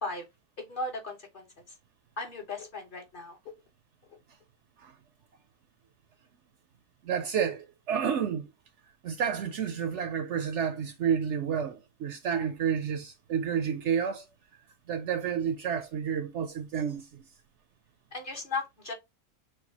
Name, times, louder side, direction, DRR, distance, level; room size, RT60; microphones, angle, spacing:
voice 1, 0.7-1.5 2.2-3.4 18.1-18.9, left 3 dB, 40° left, 1.1 m, -36 dB
voice 2, 7.0-8.5 9.0-14.2 14.9-17.2, right 7 dB, 65° right, 0.8 m, -30 dB
6.4 x 2.6 x 2.8 m
omnidirectional pair, 1.5 m